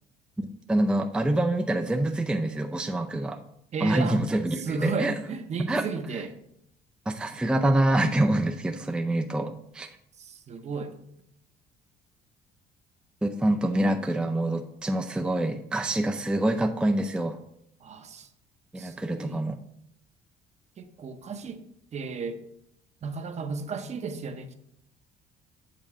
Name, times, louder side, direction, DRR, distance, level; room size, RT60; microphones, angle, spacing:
voice 1, 0.4-3.4 3.8-5.1 5.7-5.8 7.1-9.9 13.2-17.4 18.7-19.6, right 1 dB, 5° right, 5 dB, 0.4 m, -26 dB
voice 2, 3.7-4.2 4.5-6.4 10.2-11.0 13.7-14.2 17.8-18.3 18.8-19.4 20.8-21.7 21.9-22.4 23.0-24.5, right 4 dB, 40° right, 8 dB, 0.8 m, -34 dB
7.5 x 3.7 x 4.9 m, 0.75 s
cardioid pair, 110°, 17 cm